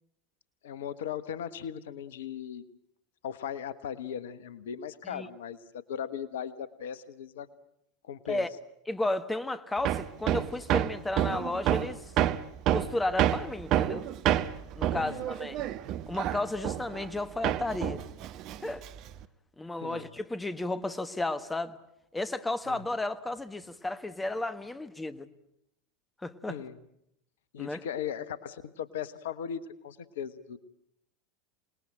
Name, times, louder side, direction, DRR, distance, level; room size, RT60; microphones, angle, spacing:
voice 1, 0.6-2.7 3.2-7.5 8.0-8.4 14.9-15.2 19.8-20.1 22.7-22.8 26.5-26.7 27.5-30.6, left 8 dB, 70° left, 1.2 m, -38 dB
voice 2, 8.9-12.1 12.7-14.1 14.8-15.6 16.1-18.0 18.6-18.9 19.6-21.8 22.1-25.3 26.2-26.6 27.6-27.8, left 2 dB, 10° left, 1.5 m, -33 dB
Hammer, 9.8-17.2 17.4-19.2, right 11 dB, 45° right, 1.1 m, -29 dB
27.5 x 20.0 x 8.9 m
figure-of-eight pair, 80°, 0 cm